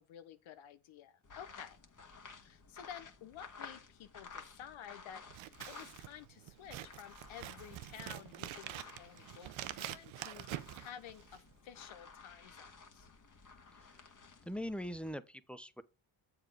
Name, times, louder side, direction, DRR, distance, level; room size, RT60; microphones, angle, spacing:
voice 1, 0.0-1.8 2.4-13.1, left 9 dB, 80° left, 0.9 m, -52 dB
sound 1, 1.2-6.3 6.6-15.1, left 4 dB, 40° left, 1.5 m, -54 dB
Scissors, 5.3-11.5, right 13 dB, 75° right, 0.7 m, -46 dB
voice 2, 14.5-15.8, equal, ahead, 0.7 m, -41 dB
7.4 x 4.8 x 4.9 m
cardioid pair, 60°, 47 cm